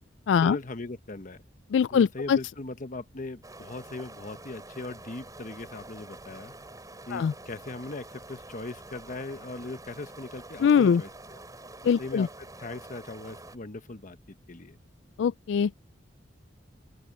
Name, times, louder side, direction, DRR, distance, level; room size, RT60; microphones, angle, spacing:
voice 1, 0.4-1.4 1.9-6.5 7.1-11.4 12.0-14.8, left 2 dB, 45° left, 1.1 m, -39 dB
voice 2, 1.7-2.4 7.1-7.3 10.6-11.0 11.8-12.3 15.2-15.7, left 7 dB, 75° left, 0.3 m, -22 dB
sound 1, 3.4-13.6, right 2 dB, 20° right, 5.9 m, -47 dB
open air
head